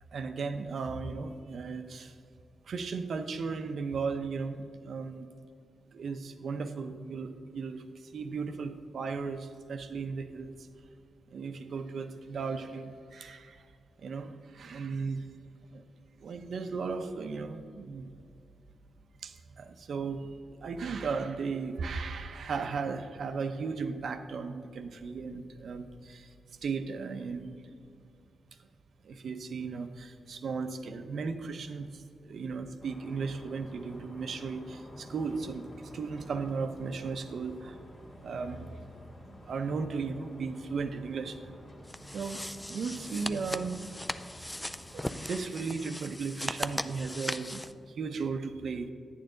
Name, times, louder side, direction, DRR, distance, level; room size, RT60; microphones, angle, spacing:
voice 1, 0.1-2.2 2.7-5.3 5.9-10.7 11.3-13.7 14.0-15.3 15.7-15.8 16.2-18.1 19.2-27.5 29.0-37.8 38.2-38.8 39.3-41.5 42.1-43.8 44.6-44.7 44.9-48.9, right 4 dB, 65° right, 8 dB, 0.7 m, -36 dB
sound 1, 32.8-45.4, equal, 45° left, 1.8 m, -50 dB
sound 2, 41.9-47.7, left 1 dB, 10° left, 0.3 m, -38 dB
10.5 x 8.8 x 3.9 m, 2.3 s
cardioid pair, 110°, 0 cm